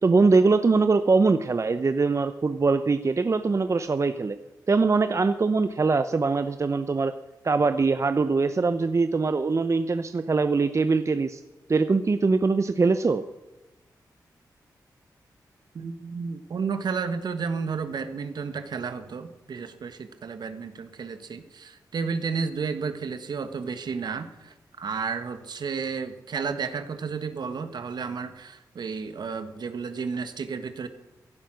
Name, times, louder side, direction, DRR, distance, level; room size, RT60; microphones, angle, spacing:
voice 1, 0.0-4.4 4.7-7.1 7.4-11.4 11.7-13.2, right 4 dB, 40° right, 10 dB, 0.8 m, -22 dB
voice 2, 15.7-30.9, right 5 dB, 70° right, 9 dB, 1.5 m, -32 dB
16.0 x 11.5 x 6.4 m, 1.0 s
cardioid pair, 55°, 7 cm